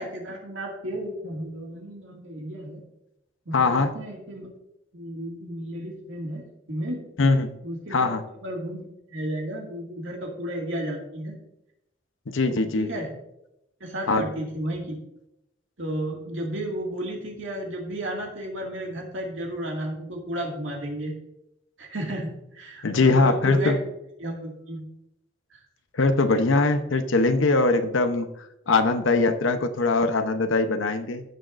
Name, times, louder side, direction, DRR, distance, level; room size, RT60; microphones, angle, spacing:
voice 1, 0.0-2.8 3.5-4.5 4.9-7.0 7.6-8.1 8.4-11.4 12.8-13.1 13.8-15.0 15.8-21.1 21.8-23.8 24.2-24.8 25.5-25.6, right 1 dB, 80° right, 0 dB, 2.1 m, -33 dB
voice 2, 3.5-3.9 7.2-7.5 7.9-8.2 12.3-12.9 14.1-14.3 22.8-23.8 25.9-28.3 28.7-31.2, left 3 dB, 80° left, 8 dB, 0.8 m, -21 dB
15.5 x 6.3 x 2.5 m, 0.83 s
head